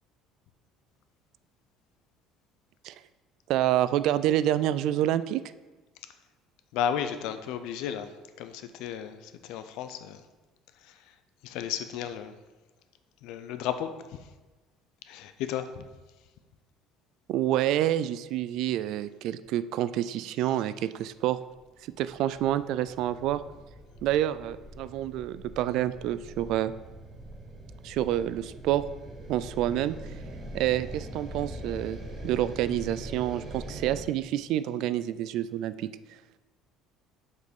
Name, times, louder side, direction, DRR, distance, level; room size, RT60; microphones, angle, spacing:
voice 1, 3.5-5.4 17.3-21.4 22.0-23.4 24.0-26.7 27.8-28.8 29.3-29.9 30.5-32.0 32.2-35.9, right 12 dB, 60° right, 15 dB, 0.3 m, -28 dB
voice 2, 6.7-8.1 8.4-10.2 10.8-11.1 11.4-12.3 13.2-14.3 15.1-15.9, left 9 dB, 70° left, 10 dB, 0.6 m, -34 dB
sound 1, 21.5-34.0, right 1 dB, 25° right, 1.1 m, -43 dB
6.3 x 5.3 x 5.3 m, 1.2 s
cardioid pair, 155°, 0 cm